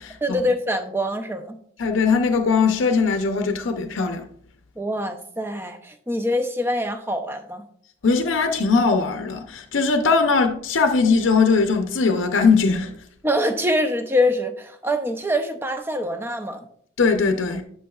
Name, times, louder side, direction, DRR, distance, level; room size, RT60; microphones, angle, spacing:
voice 1, 0.2-1.6 4.8-7.6 13.2-16.6, left 1 dB, 10° right, 0.6 m, -24 dB
voice 2, 1.8-4.2 8.0-12.9 17.0-17.6, left 4 dB, 90° left, 0.6 m, -20 dB
10.5 x 5.4 x 2.3 m
head